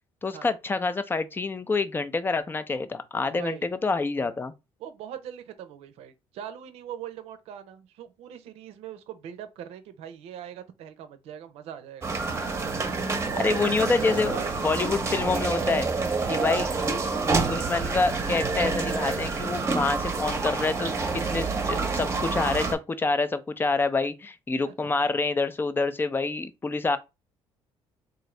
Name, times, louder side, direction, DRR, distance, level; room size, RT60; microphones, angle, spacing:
voice 1, 0.2-4.5 13.4-15.9 16.3-16.7 17.5-27.0, left 3 dB, 20° left, 0.4 m, -27 dB
voice 2, 3.2-3.7 4.8-12.2 13.3-13.7 14.2-14.6 16.6-16.9 24.6-24.9, right 9 dB, 80° right, 0.6 m, -41 dB
sound 1, 12.0-22.7, right 4 dB, 25° right, 0.8 m, -28 dB
3.8 x 2.6 x 3.2 m
cardioid pair, 105°, 10 cm